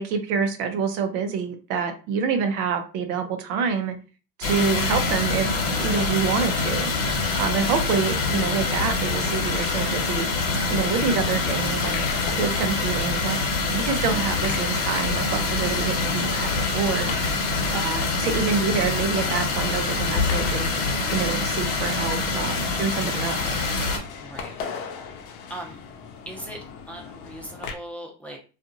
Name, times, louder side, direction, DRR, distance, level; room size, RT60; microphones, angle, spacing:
voice 1, 0.0-4.0 4.4-5.5 5.8-6.9 7.3-10.3 10.7-12.0 12.4-13.4 13.7-17.1 17.7-20.7 21.1-23.6, right 6 dB, 80° right, 6 dB, 0.7 m, -27 dB
sound 1, 4.4-24.0, left 3 dB, 50° left, 1.1 m, -25 dB
sound 2, 11.5-27.7, left 6 dB, 70° left, 0.6 m, -39 dB
voice 2, 17.7-18.0 24.2-24.5 25.0-25.2 25.5-25.8 26.3-28.4, right 1 dB, 5° left, -2 dB, 0.5 m, -40 dB
2.7 x 2.5 x 2.6 m, 0.35 s
supercardioid pair, 105°, 43 cm